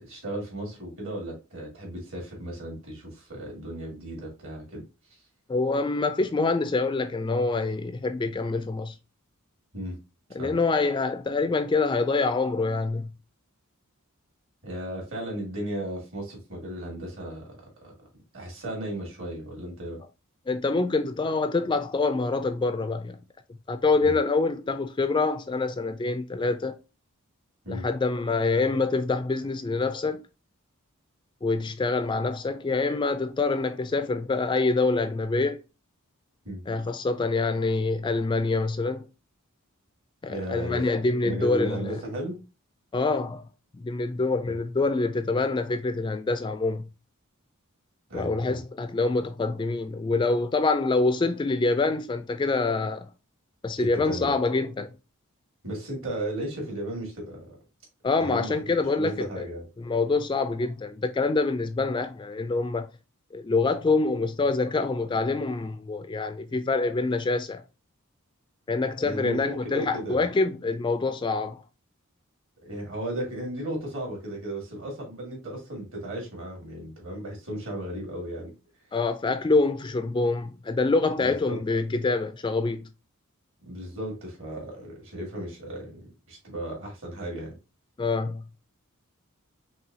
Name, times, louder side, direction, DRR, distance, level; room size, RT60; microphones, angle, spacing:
voice 1, 0.0-4.8 9.7-10.0 10.4-10.5 14.6-17.9 18.3-20.0 24.0-24.2 27.6-27.9 36.4-36.6 40.3-40.8 41.2-42.4 44.5-44.6 48.1-48.6 53.8-54.3 55.6-57.6 58.2-58.5 59.0-59.7 69.0-70.2 72.6-78.5 81.2-81.6 83.6-87.6, right 1 dB, 65° right, 2.5 m, -35 dB
voice 2, 5.5-8.9 10.3-13.1 20.5-23.2 23.7-26.8 27.7-30.2 31.4-35.6 36.7-39.0 40.2-41.9 42.9-43.4 43.7-46.9 48.1-53.1 53.6-54.9 58.0-59.5 59.8-62.9 63.3-67.6 68.7-71.6 78.9-82.9 88.0-88.4, left 3 dB, 20° left, 0.3 m, -26 dB
5.5 x 2.7 x 2.7 m
head